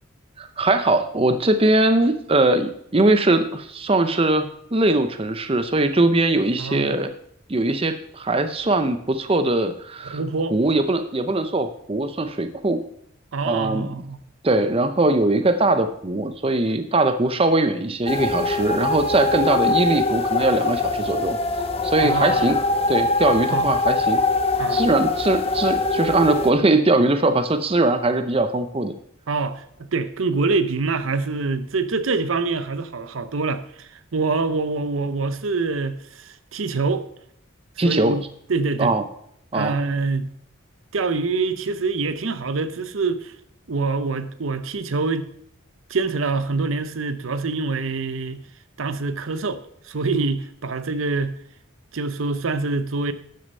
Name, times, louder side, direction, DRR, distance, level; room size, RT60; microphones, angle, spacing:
voice 1, 0.4-7.1 7.5-10.2 10.5-12.8 13.4-13.9 14.4-21.4 21.8-22.6 22.9-24.2 24.7-28.9 37.8-38.2 38.8-39.0 39.5-39.8, right 2 dB, 25° right, 0.6 m, -21 dB
voice 2, 6.6-7.0 10.0-10.5 13.3-14.2 22.0-22.4 23.5-23.7 24.6-24.9 29.3-37.0 37.8-38.2 38.5-38.9 39.5-40.3 40.9-43.3 43.7-45.3 45.9-48.4 48.8-49.6 49.9-51.4 51.9-53.1, right 3 dB, 75° right, 0.7 m, -25 dB
sound 1, 18.1-26.5, left 3 dB, 30° left, 0.9 m, -23 dB
12.0 x 6.6 x 5.5 m
head